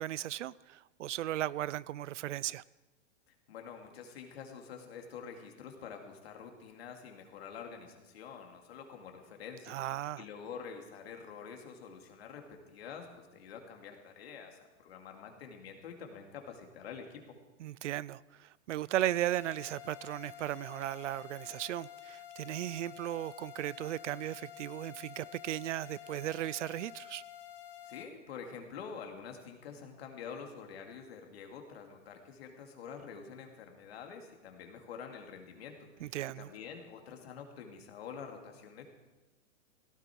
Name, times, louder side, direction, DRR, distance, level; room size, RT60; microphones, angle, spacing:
voice 1, 0.0-2.6 9.7-10.2 17.6-27.2 36.0-36.5, right 13 dB, 75° right, 0.5 m, -36 dB
voice 2, 3.5-9.8 10.2-17.3 27.8-38.8, left 6 dB, 55° left, 2.8 m, -47 dB
sound 1, 19.0-28.0, left 11 dB, 20° left, 0.8 m, -50 dB
17.0 x 16.0 x 4.6 m
hypercardioid pair, 170°, 37 cm